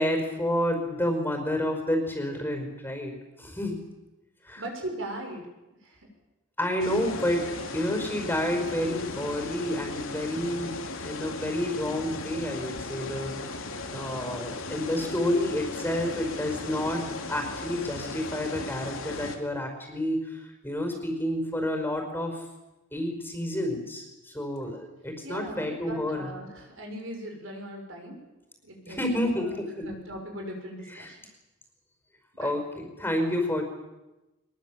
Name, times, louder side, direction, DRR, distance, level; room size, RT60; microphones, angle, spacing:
voice 1, 0.0-3.8 4.4-4.6 6.6-17.0 17.3-22.4 22.9-26.3 28.9-29.9 30.9-31.1 32.4-33.6, left 1 dB, 10° left, 4 dB, 5.1 m, -30 dB
voice 2, 4.6-5.5 5.8-6.1 25.2-28.2 28.6-29.5 29.8-31.2 32.4-32.6, right 1 dB, 65° right, 2 dB, 6.4 m, -39 dB
sound 1, 6.8-19.4, left 3 dB, 75° left, 2.8 m, -37 dB
23.0 x 22.0 x 7.6 m, 1.0 s
head